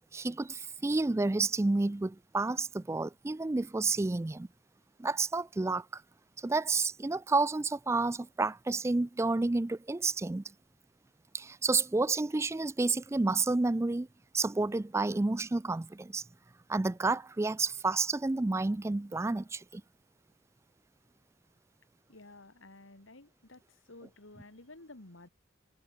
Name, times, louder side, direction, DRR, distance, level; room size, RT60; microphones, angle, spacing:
voice 1, 0.1-4.5 5.0-6.0 6.4-10.4 11.3-14.1 14.3-16.2 16.7-19.8, right 3 dB, 15° right, 0.3 m, -30 dB
voice 2, 22.1-25.3, left 2 dB, 85° left, 2.8 m, -53 dB
head